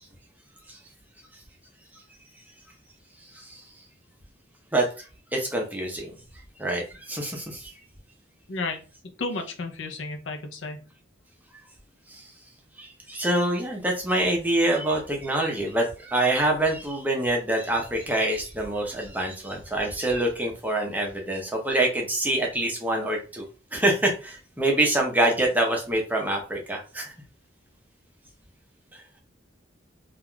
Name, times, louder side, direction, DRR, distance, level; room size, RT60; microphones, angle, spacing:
voice 1, 4.7-5.0 5.3-6.1 6.6-7.7 12.1-12.2 12.8-23.4 23.7-27.1 28.9-29.0, right 1 dB, 10° right, 0 dB, 0.6 m, -26 dB
voice 2, 8.5-8.8 9.2-10.9, left 3 dB, 80° left, 5 dB, 0.6 m, -32 dB
3.3 x 2.4 x 2.2 m, 0.35 s
head